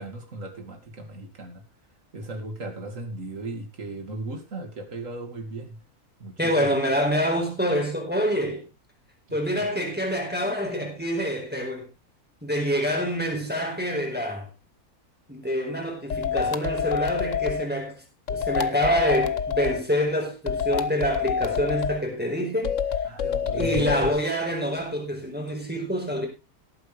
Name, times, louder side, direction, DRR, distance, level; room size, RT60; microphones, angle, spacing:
voice 1, 0.0-1.6 2.1-5.8 6.2-6.7 9.3-9.6 23.0-24.1, right 2 dB, 60° right, 2.7 m, -37 dB
voice 2, 6.4-8.6 9.3-11.9 12.4-14.5 15.3-18.0 18.3-22.8 23.5-26.3, equal, 5° right, 4.6 m, -26 dB
sound 1, 16.1-17.7 18.3-19.8 20.5-22.0 22.6-24.2, left 7 dB, 60° left, 1.2 m, -27 dB
18.5 x 9.2 x 3.4 m
omnidirectional pair, 1.6 m